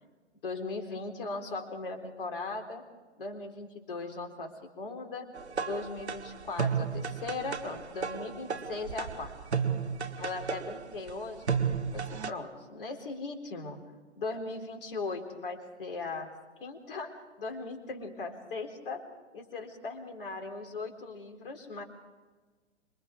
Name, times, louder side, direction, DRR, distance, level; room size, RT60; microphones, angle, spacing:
voice 1, 0.4-2.8 3.2-5.3 5.6-9.3 10.2-11.5 11.9-13.8 14.2-16.3 16.6-19.1 19.3-21.8, left 3 dB, 50° left, 4 dB, 4.0 m, -38 dB
sound 1, 5.3-12.3, right 6 dB, 70° right, 1.3 m, -33 dB
26.0 x 24.0 x 4.9 m, 1.3 s
figure-of-eight pair, 125°, 35 cm